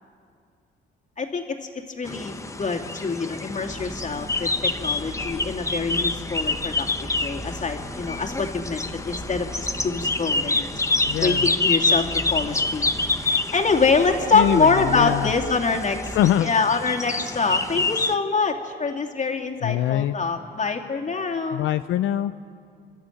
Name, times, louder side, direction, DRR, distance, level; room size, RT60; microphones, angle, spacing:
voice 1, 1.2-1.7 2.0-10.8 11.2-12.9 13.2-16.0 16.4-21.6, left 4 dB, 40° left, 2 dB, 2.7 m, -25 dB
sound 1, 2.0-18.1, left 3 dB, 15° left, 1.1 m, -27 dB
sound 2, 3.7-16.4, right 1 dB, 30° right, 6.0 m, -41 dB
voice 2, 11.1-11.5 14.3-15.3 16.1-16.5 19.6-20.1 21.5-22.5, left 12 dB, 85° left, 10 dB, 0.6 m, -23 dB
29.0 x 13.0 x 9.2 m, 2.3 s
cardioid pair, 90°, 20 cm